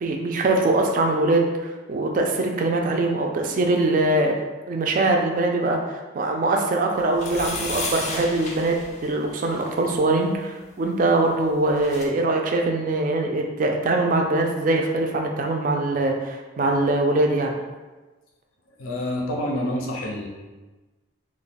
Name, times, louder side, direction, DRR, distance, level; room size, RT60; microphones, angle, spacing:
voice 1, 0.0-4.4 4.7-17.6, right 2 dB, 40° right, 2 dB, 0.3 m, -22 dB
sound 1, 7.1-9.7 11.4-11.5 11.7-12.1, left 3 dB, 35° left, 0.4 m, -33 dB
voice 2, 18.8-20.3, left 1 dB, 85° left, 0 dB, 0.6 m, -27 dB
3.2 x 2.2 x 4.0 m, 1.2 s
head